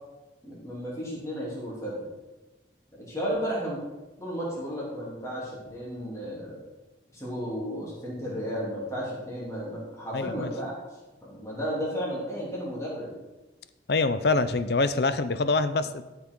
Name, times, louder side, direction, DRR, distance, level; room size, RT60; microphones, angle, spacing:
voice 1, 0.4-2.1 2.9-3.8 4.2-6.6 7.1-10.8 11.2-13.1, equal, 15° left, -6 dB, 2.9 m, -33 dB
voice 2, 10.1-10.5 13.9-16.0, left 3 dB, 60° left, 12 dB, 0.6 m, -25 dB
12.0 x 6.0 x 4.6 m, 1.1 s
head